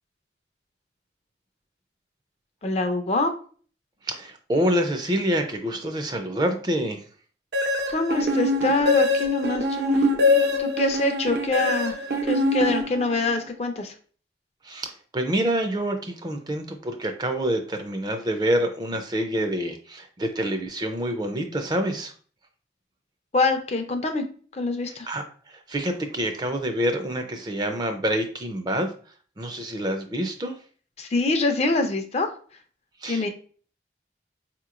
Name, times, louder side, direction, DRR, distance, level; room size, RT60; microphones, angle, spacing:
voice 1, 2.6-3.3 7.9-10.0 10.6-11.9 12.2-13.9 23.3-24.2 24.5-25.1 31.0-32.3 33.1-33.3, left 2 dB, 35° left, 6 dB, 0.4 m, -25 dB
voice 2, 4.0-7.0 14.6-22.1 24.8-28.9 29.4-30.6 33.0-33.3, right 1 dB, 25° right, 5 dB, 0.4 m, -27 dB
sound 1, 7.5-13.4, left 2 dB, 70° right, 0.6 m, -23 dB
4.6 x 2.9 x 2.4 m, 0.43 s
head